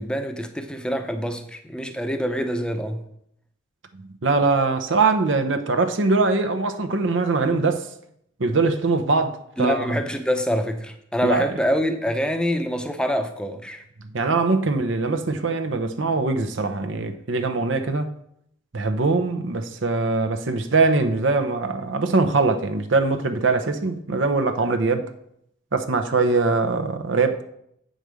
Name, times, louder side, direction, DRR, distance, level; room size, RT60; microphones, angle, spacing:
voice 1, 0.0-3.0 9.6-13.8, equal, 5° left, 0.7 m, -25 dB
voice 2, 4.2-7.9 8.4-10.0 11.2-11.5 14.1-18.1 18.7-25.1 25.7-27.4, right 3 dB, 75° right, 0.8 m, -22 dB
8.1 x 5.1 x 6.3 m
head